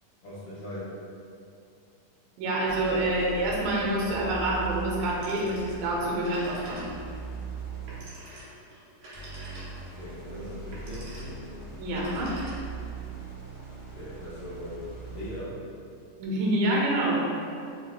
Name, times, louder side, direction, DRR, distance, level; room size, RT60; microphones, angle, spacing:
voice 1, 0.2-0.9 9.9-11.5 13.8-15.6, left 1 dB, 75° left, -13 dB, 1.3 m, -40 dB
voice 2, 2.4-6.9 11.8-12.4 16.2-17.3, right 1 dB, 85° right, -3 dB, 2.2 m, -27 dB
sound 1, 2.6-8.3 9.1-15.5, right 4 dB, 40° right, 0.9 m, -40 dB
Telephone, 5.1-5.8 6.1-7.2 7.9-10.0 10.6-11.4 11.8-12.9, right 1 dB, 70° right, 2.2 m, -46 dB
5.2 x 2.1 x 3.0 m, 2.5 s
omnidirectional pair, 3.7 m